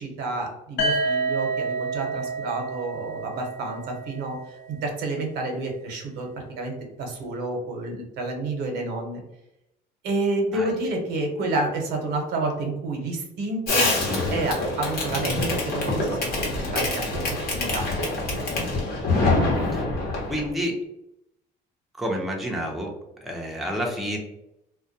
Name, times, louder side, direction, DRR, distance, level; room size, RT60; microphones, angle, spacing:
voice 1, 0.0-4.4 4.7-6.7 7.0-9.2 10.0-14.0 14.3-16.4 16.7-17.9, right 2 dB, 80° right, 2 dB, 0.8 m, -29 dB
sound 1, 0.8-4.7, right 3 dB, 85° left, 0.6 m, -29 dB
Fireworks, 13.7-20.5, left 2 dB, 65° left, 0.9 m, -25 dB
voice 2, 20.3-20.7 22.0-22.9 23.2-24.2, equal, ahead, 0 dB, 0.5 m, -29 dB
2.3 x 2.2 x 2.6 m, 0.86 s
cardioid pair, 110°, 17 cm